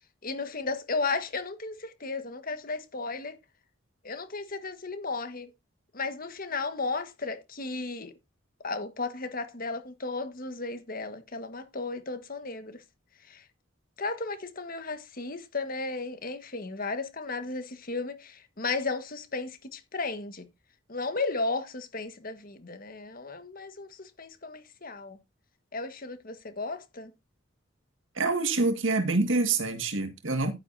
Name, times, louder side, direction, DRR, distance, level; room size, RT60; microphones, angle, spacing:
voice 1, 0.2-3.3 4.0-5.5 5.9-8.1 8.6-12.8 13.3-13.4 14.0-20.5 20.9-25.2 25.7-27.1, left 3 dB, 45° left, 1.6 m, -34 dB
voice 2, 28.2-30.5, right 3 dB, 80° right, 1.9 m, -26 dB
10.5 x 10.0 x 2.7 m
head